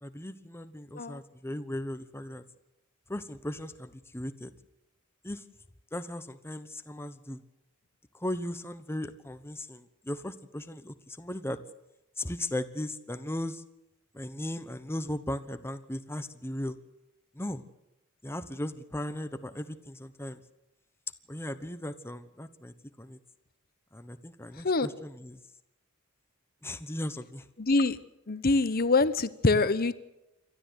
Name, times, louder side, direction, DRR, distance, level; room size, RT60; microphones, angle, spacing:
voice 1, 0.0-2.4 3.1-4.5 5.2-5.4 5.9-7.4 8.1-11.6 12.2-13.6 14.1-16.8 17.3-17.6 18.2-20.4 21.3-23.2 23.9-25.4 26.6-27.5, left 1 dB, 10° left, 11 dB, 1.0 m, -37 dB
voice 2, 27.6-28.0 28.3-29.9, left 3 dB, 45° left, 15 dB, 0.9 m, -25 dB
28.0 x 13.0 x 8.1 m, 0.91 s
head